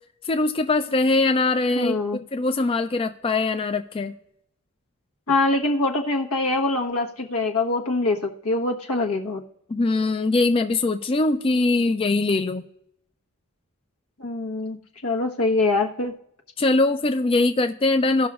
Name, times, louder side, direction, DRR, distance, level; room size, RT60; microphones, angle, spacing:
voice 1, 0.3-4.1 9.7-12.6 16.6-18.3, left 2 dB, 25° left, 7 dB, 0.4 m, -22 dB
voice 2, 1.7-2.2 5.3-9.4 10.2-10.3 14.2-14.8 15.0-16.1, left 2 dB, 80° left, 1 dB, 1.2 m, -24 dB
17.5 x 6.0 x 2.4 m, 0.76 s
head